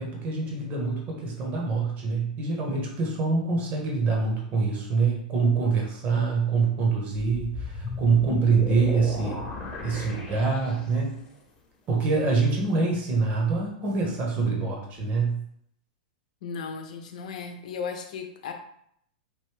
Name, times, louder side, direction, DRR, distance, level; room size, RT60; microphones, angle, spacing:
voice 1, 0.0-9.4 9.8-11.2 11.9-15.4, right 4 dB, 35° right, -1 dB, 1.4 m, -25 dB
sound 1, 7.2-11.1, left 3 dB, 25° left, 1.2 m, -36 dB
voice 2, 16.4-18.5, left 5 dB, 65° left, 5 dB, 0.8 m, -35 dB
5.2 x 2.7 x 3.4 m, 0.70 s
hypercardioid pair, 105°, 4 cm